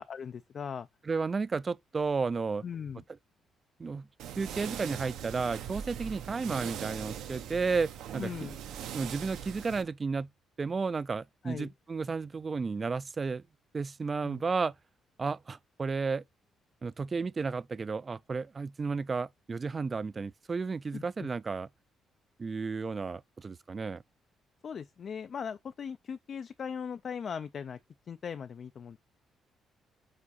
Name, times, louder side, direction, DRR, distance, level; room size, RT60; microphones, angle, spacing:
voice 1, 0.0-0.9 2.6-3.0 8.2-8.6 11.4-11.7 14.2-14.4 20.9-21.3 24.6-27.8 28.1-29.0, left 7 dB, 50° left, 0.4 m, -39 dB
voice 2, 1.1-2.6 3.8-4.1 4.4-8.3 8.9-10.3 10.6-13.4 13.7-14.7 15.2-16.2 16.8-21.7 22.4-24.0, right 4 dB, 35° right, 0.3 m, -33 dB
sound 1, 4.2-9.8, right 9 dB, 85° right, 0.9 m, -41 dB
4.9 x 4.7 x 4.1 m
cardioid pair, 90°, 0 cm